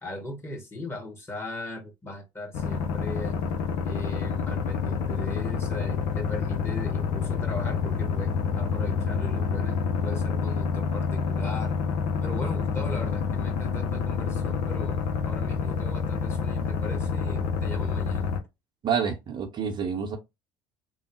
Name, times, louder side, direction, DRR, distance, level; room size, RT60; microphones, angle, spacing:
voice 1, 0.0-3.4 3.8-11.8 12.2-18.3, left 1 dB, 20° left, 1.5 m, -38 dB
sound 1, 2.5-18.4, left 6 dB, 65° left, 0.7 m, -28 dB
voice 2, 18.8-20.2, right 7 dB, 40° right, 0.7 m, -28 dB
3.1 x 2.0 x 3.0 m
hypercardioid pair, 65°, 11 cm